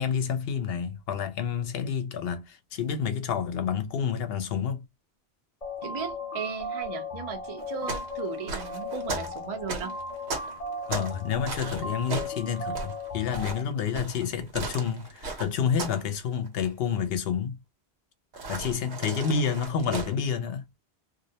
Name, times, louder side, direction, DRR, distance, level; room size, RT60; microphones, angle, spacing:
voice 1, 0.0-4.8 10.9-17.6 18.5-20.6, left 7 dB, 70° left, 0.8 m, -29 dB
sound 1, 5.6-13.6, left 2 dB, 40° left, 0.9 m, -36 dB
voice 2, 5.8-9.9, right 7 dB, 40° right, 0.6 m, -36 dB
sound 2, 7.6-11.2 11.5-16.1 16.3-16.7 18.3-20.1, right 3 dB, 90° right, 1.1 m, -36 dB
2.4 x 2.0 x 2.7 m
omnidirectional pair, 1.1 m